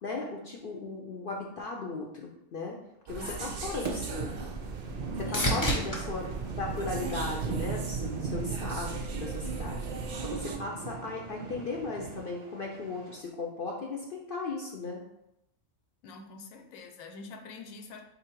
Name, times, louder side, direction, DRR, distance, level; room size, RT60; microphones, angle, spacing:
voice 1, 0.0-2.8 3.1-4.3 5.2-6.3 6.6-15.0, left 3 dB, 60° left, -1 dB, 0.6 m, -37 dB
sound 1, 3.1-10.6, right 5 dB, 85° right, 0.4 m, -38 dB
voice 2, 3.2-4.1 5.2-6.0 16.0-18.0, left 4 dB, 85° left, 5 dB, 1.0 m, -45 dB
sound 2, 3.8-13.2, right 5 dB, 40° right, 0.6 m, -39 dB
sound 3, 4.3-7.8 8.3-8.9 16.8-16.9, equal, 20° left, 0.7 m, -35 dB
3.8 x 2.7 x 4.4 m, 0.83 s
omnidirectional pair, 1.4 m